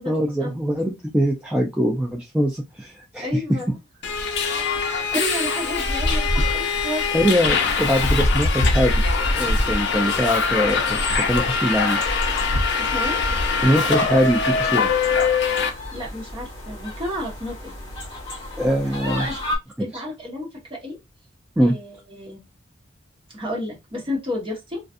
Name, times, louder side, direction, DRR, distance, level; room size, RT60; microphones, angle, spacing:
voice 1, 0.1-3.3 7.1-9.0 9.3-12.0 13.6-15.0 18.6-19.4 19.9-20.0 21.6-21.7, equal, 5° right, -1 dB, 0.3 m, -22 dB
voice 2, 3.2-3.7 4.8-7.0 12.8-13.2 15.9-17.7 19.0-19.3 19.8-21.0 21.6-22.4 23.3-24.8, left 1 dB, 25° right, -3 dB, 1.1 m, -31 dB
Subway metro underground, 4.0-15.7, left 4 dB, 60° left, 0.6 m, -22 dB
sound 1, 7.6-19.6, left 1 dB, 25° left, 1.1 m, -35 dB
2.4 x 2.4 x 2.4 m, 0.22 s
head